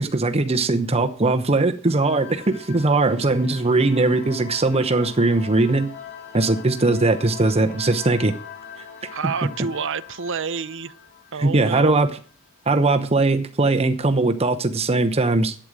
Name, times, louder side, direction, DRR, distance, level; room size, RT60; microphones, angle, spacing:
voice 1, 0.0-5.9 6.3-8.3 11.4-12.1 12.7-15.5, right 2 dB, 30° right, 0.9 m, -20 dB
sound 1, 1.8-12.2, left 7 dB, 50° left, 3.0 m, -42 dB
voice 2, 9.1-10.9 11.3-12.0, right 6 dB, 60° right, 0.8 m, -28 dB
11.5 x 8.9 x 6.4 m
head